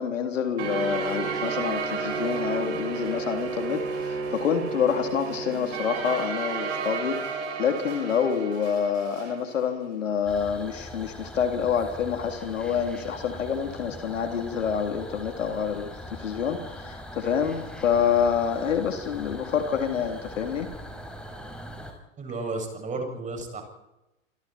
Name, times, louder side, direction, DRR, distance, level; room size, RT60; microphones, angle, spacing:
voice 1, 0.0-20.7, left 7 dB, 70° left, 5 dB, 3.7 m, -27 dB
sound 1, 0.6-9.4, right 5 dB, 55° right, 6.7 m, -32 dB
sound 2, 10.3-21.9, left 1 dB, ahead, 5.4 m, -41 dB
voice 2, 22.2-23.6, right 3 dB, 20° right, 4 dB, 7.4 m, -33 dB
28.5 x 25.0 x 4.6 m, 0.94 s
figure-of-eight pair, 100°, 39 cm